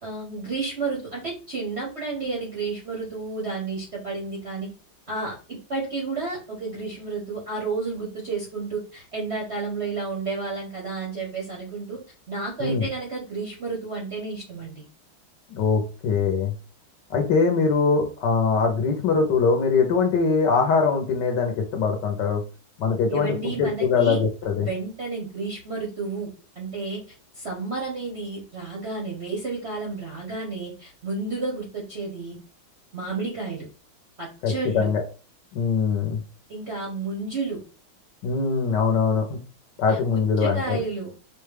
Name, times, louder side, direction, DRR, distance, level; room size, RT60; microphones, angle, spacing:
voice 1, 0.0-4.7 5.1-5.4 5.7-12.0 12.3-14.8 23.1-24.2 24.6-32.4 32.9-33.7 34.2-34.9 36.5-37.6 39.9-40.0 40.4-41.1, right 3 dB, 55° right, -2 dB, 0.7 m, -31 dB
voice 2, 15.5-16.5 17.1-22.4 22.8-24.7 34.4-35.0 35.5-36.2 38.2-39.4 39.8-40.8, left 5 dB, 70° left, 3 dB, 1.1 m, -22 dB
4.8 x 2.2 x 3.2 m, 0.35 s
omnidirectional pair, 2.3 m